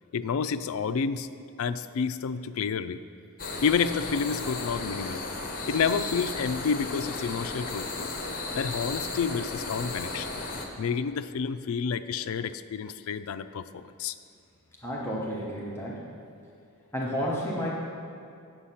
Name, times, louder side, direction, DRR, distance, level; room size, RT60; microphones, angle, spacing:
voice 1, 0.1-1.3 1.6-3.0 3.6-5.3 5.7-8.1 8.5-10.3 10.8-14.1, left 6 dB, 70° left, 11 dB, 0.4 m, -29 dB
sound 1, 3.4-10.7, left 3 dB, 40° left, 0.9 m, -34 dB
voice 2, 14.8-16.0 16.9-17.8, equal, 10° left, -4 dB, 0.9 m, -31 dB
8.5 x 7.2 x 5.7 m, 2.5 s
head